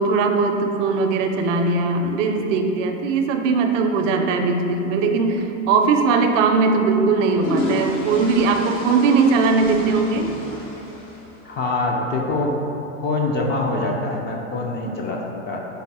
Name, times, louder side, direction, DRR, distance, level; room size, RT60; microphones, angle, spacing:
voice 1, 0.0-10.3, right 4 dB, 70° right, 5 dB, 0.5 m, -19 dB
sound 1, 5.6-5.8 7.0-11.6, left 1 dB, 65° left, 1.3 m, -31 dB
voice 2, 11.4-12.6 13.0-15.6, left 2 dB, 25° left, 0 dB, 0.4 m, -24 dB
5.4 x 2.1 x 4.1 m, 3.0 s
supercardioid pair, 110°, 39 cm